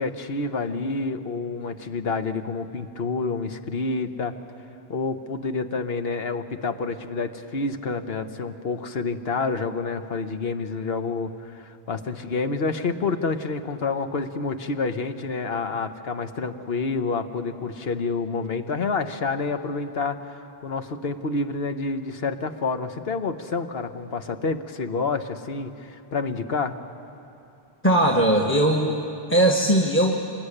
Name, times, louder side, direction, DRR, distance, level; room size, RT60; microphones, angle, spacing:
voice 1, 0.0-4.3 4.9-26.8, left 4 dB, 70° left, 8 dB, 1.4 m, -28 dB
voice 2, 27.8-28.9 29.3-30.1, right 1 dB, 10° left, 1 dB, 1.5 m, -19 dB
27.0 x 21.0 x 10.0 m, 2.8 s
omnidirectional pair, 1.1 m